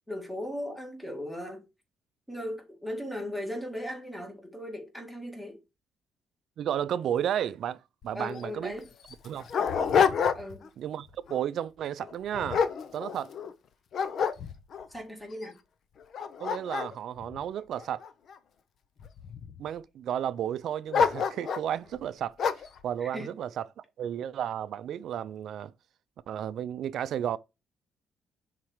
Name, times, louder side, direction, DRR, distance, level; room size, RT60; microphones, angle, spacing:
voice 1, 0.1-1.7 2.3-5.6 8.1-8.9 10.3-10.7 14.9-15.6 23.0-23.3, left 1 dB, 5° left, 1.9 m, -37 dB
voice 2, 6.6-8.7 9.2-9.5 10.8-13.3 16.4-18.0 19.6-25.7 26.3-27.4, right 10 dB, 65° right, 0.5 m, -33 dB
Dog, 8.0-8.1 8.4-8.5 9.1-10.7 11.1-11.4 12.0-13.5 13.9-14.9 15.4-15.5 16.0-18.3 19.0-19.6 20.9-21.7 22.4-22.8, left 6 dB, 55° left, 0.7 m, -28 dB
5.8 x 4.1 x 4.8 m
cardioid pair, 130°, 0 cm